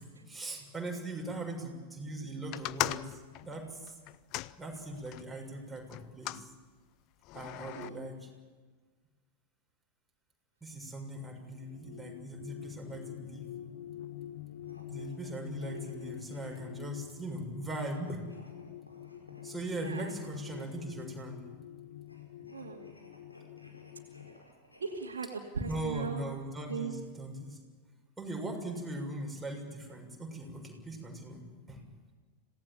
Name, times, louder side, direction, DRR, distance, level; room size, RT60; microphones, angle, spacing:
voice 1, 0.0-3.9 4.6-6.5 7.3-8.3 10.6-13.5 14.9-18.2 19.4-21.4 25.6-27.6 28.2-31.8, right 1 dB, 5° right, -1 dB, 6.7 m, -40 dB
sound 1, 2.5-5.3 5.9-6.5 7.2-7.9, left 17 dB, 40° left, 0.6 m, -38 dB
voice 2, 7.6-8.0 15.2-15.3 15.6-15.8 19.8-20.4 22.5-23.0 24.8-26.2 26.6-26.9, right 4 dB, 70° right, -3 dB, 2.6 m, -39 dB
sound 2, 11.6-24.4, left 12 dB, 55° left, 1.1 m, -46 dB
sound 3, 14.6-16.9 17.6-20.9 22.0-25.9, left 1 dB, 85° left, 5.5 m, -59 dB
26.5 x 18.0 x 7.4 m, 1.4 s
figure-of-eight pair, 90°, 0 cm